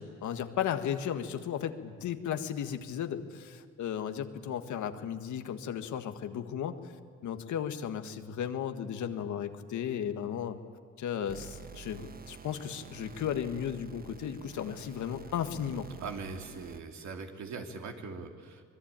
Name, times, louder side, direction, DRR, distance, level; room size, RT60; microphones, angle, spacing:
voice 1, 0.0-6.8 7.2-10.6 11.0-15.9, left 9 dB, 75° left, 8 dB, 1.7 m, -35 dB
sound 1, 11.3-17.0, right 6 dB, 30° right, 1.2 m, -48 dB
voice 2, 16.0-18.6, right 4 dB, 65° right, 3 dB, 3.0 m, -41 dB
25.0 x 20.5 x 9.0 m, 2.1 s
cardioid pair, 90°, 30 cm